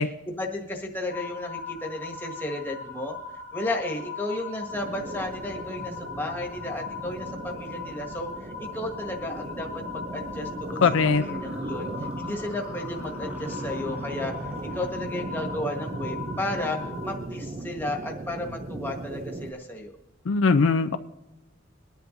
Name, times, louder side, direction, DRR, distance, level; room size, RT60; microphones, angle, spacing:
voice 1, 0.2-3.2 3.5-11.9 12.2-14.3 14.7-19.9, left 1 dB, 10° left, -1 dB, 1.6 m, -33 dB
sound 1, 1.1-17.2, left 5 dB, 55° right, 2.9 m, -39 dB
sound 2, 4.7-19.5, right 2 dB, 30° right, 0.5 m, -37 dB
voice 2, 10.8-11.2 20.3-21.0, left 4 dB, 70° left, 9 dB, 0.5 m, -20 dB
sound 3, 11.1-15.4, left 1 dB, 5° right, 1.2 m, -46 dB
23.0 x 10.5 x 2.6 m, 0.96 s
head